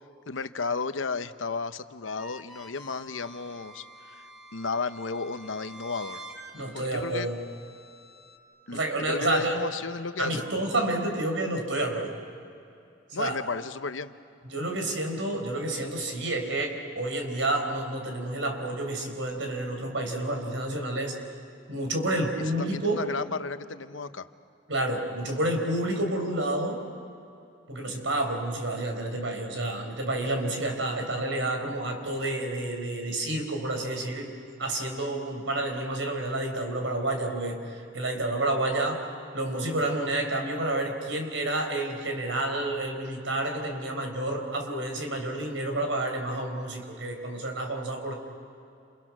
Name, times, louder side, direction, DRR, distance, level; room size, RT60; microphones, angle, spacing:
voice 1, 0.3-4.2 4.5-6.2 6.7-7.3 8.7-10.4 13.1-14.1 22.6-24.3, left 4 dB, 85° left, 11 dB, 0.9 m, -33 dB
sound 1, 2.0-8.4, right 1 dB, ahead, 2.4 m, -48 dB
voice 2, 6.5-7.4 8.7-9.6 10.2-12.1 13.1-13.4 14.5-21.2 21.7-23.0 24.7-26.8 27.7-34.3 34.6-39.1 39.3-48.1, right 1 dB, 80° right, 4 dB, 4.5 m, -29 dB
30.0 x 29.0 x 6.1 m, 2.6 s
head